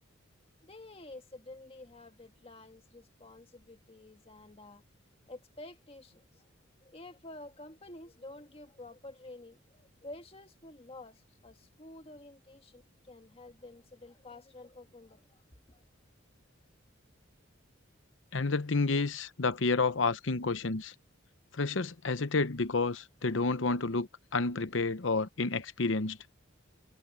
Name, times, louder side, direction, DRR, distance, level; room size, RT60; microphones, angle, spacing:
voice 1, 0.6-4.8 5.3-6.4 6.8-15.4 15.7-15.8, left 2 dB, 30° left, 1.9 m, -50 dB
voice 2, 18.3-20.9 21.5-26.2, left 3 dB, 65° left, 0.9 m, -30 dB
head